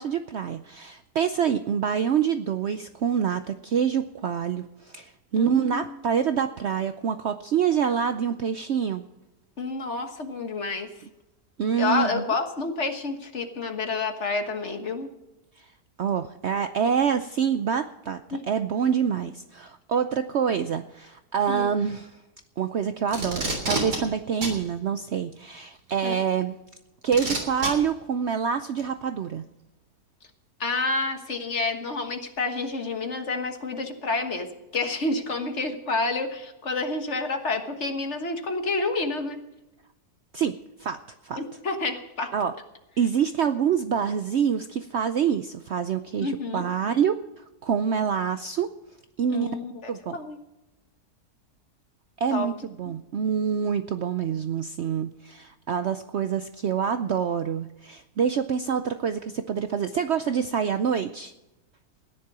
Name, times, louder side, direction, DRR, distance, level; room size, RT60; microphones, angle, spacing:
voice 1, 0.0-9.0 11.6-12.2 16.0-18.2 18.5-22.1 22.6-26.6 27.0-29.5 40.3-41.0 41.2-41.4 42.3-42.5 43.0-47.2 47.6-48.7 49.2-49.6 49.9-50.2 52.2-61.3, right 7 dB, 60° right, 10 dB, 0.7 m, -26 dB
voice 2, 5.4-6.0 9.6-10.9 11.8-15.1 18.3-18.4 21.5-21.7 26.0-26.2 30.6-34.5 34.7-39.4 41.4-42.3 46.2-46.7 49.3-50.4 52.3-52.5, left 3 dB, 45° left, 6 dB, 1.7 m, -29 dB
Packing tape duct tape, 23.1-24.0 24.4-24.6 25.9-26.0 27.1-27.7 28.8-28.9, right 2 dB, 85° right, 4.0 m, -27 dB
15.0 x 10.5 x 6.1 m, 0.95 s
omnidirectional pair, 1.7 m